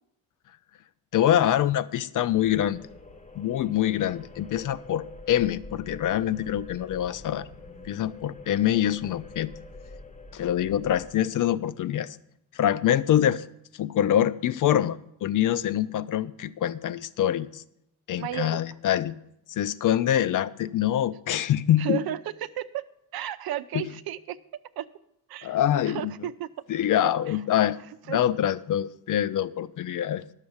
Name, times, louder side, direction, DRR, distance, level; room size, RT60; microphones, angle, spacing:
voice 1, 1.1-2.8 3.4-7.5 7.8-9.5 10.3-12.2 12.5-17.6 18.1-19.1 19.5-22.0 23.7-23.9 25.4-26.1 26.7-27.8 28.1-30.2, left 11 dB, 60° left, 15 dB, 0.5 m, -25 dB
sound 1, 2.3-11.1, left 2 dB, 20° left, 0.7 m, -46 dB
voice 2, 18.2-18.6 21.8-22.8 23.1-24.4 24.8-24.9 25.3-25.6 25.8-26.5 27.3-27.4 28.1-28.2, right 12 dB, 90° right, 11 dB, 0.7 m, -33 dB
11.5 x 6.6 x 7.1 m, 0.80 s
wide cardioid pair, 165°, 35 cm